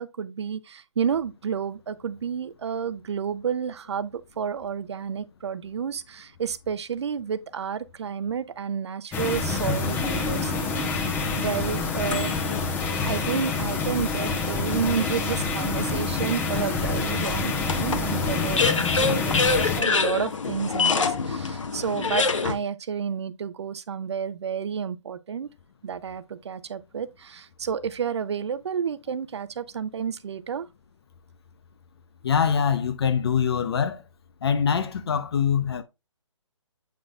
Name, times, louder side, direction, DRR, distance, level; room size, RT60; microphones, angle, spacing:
voice 1, 0.0-12.5 13.0-25.5 25.8-30.7, right 7 dB, 60° right, 0.7 m, -31 dB
sound 1, 9.1-19.8, left 4 dB, 10° left, 1.1 m, -27 dB
sound 2, 10.9-12.6 13.3-13.4 17.2-22.5, left 4 dB, 70° left, 1.3 m, -26 dB
voice 2, 32.2-34.0 34.4-35.8, left 7 dB, 50° left, 0.8 m, -23 dB
8.0 x 4.9 x 2.4 m
figure-of-eight pair, 145°, 16 cm